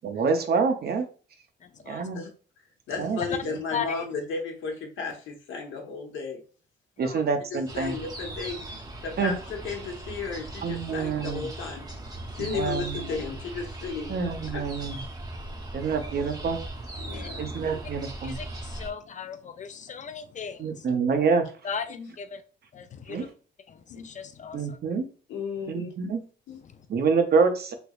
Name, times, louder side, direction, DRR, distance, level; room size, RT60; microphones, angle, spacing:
voice 1, 0.0-1.0 1.9-2.2 3.0-3.6 7.0-7.9 9.2-9.3 10.6-11.5 12.4-13.1 14.1-15.0 15.7-16.6 17.4-18.4 20.6-21.4 23.1-23.2 24.5-25.1 25.7-26.2 26.9-27.7, right 5 dB, 50° right, 0.6 m, -26 dB
voice 2, 1.6-2.1 3.3-3.4 3.7-4.0 7.0-7.2 13.1-13.2 15.5-15.8 17.1-17.3 18.2-20.9 21.6-22.4 22.7-23.3 23.7-24.8 26.6-26.9, left 6 dB, 40° left, 0.4 m, -37 dB
voice 3, 2.9-6.4 7.5-8.6 9.0-11.9 12.3-14.2 14.5-14.7 17.0-17.8 21.9-22.1 23.9-24.1 25.3-26.1 26.5-26.6, left 4 dB, 80° left, 0.9 m, -34 dB
sound 1, 7.7-18.9, right 1 dB, 20° right, 0.7 m, -39 dB
3.4 x 2.9 x 2.3 m
cardioid pair, 90°, 20 cm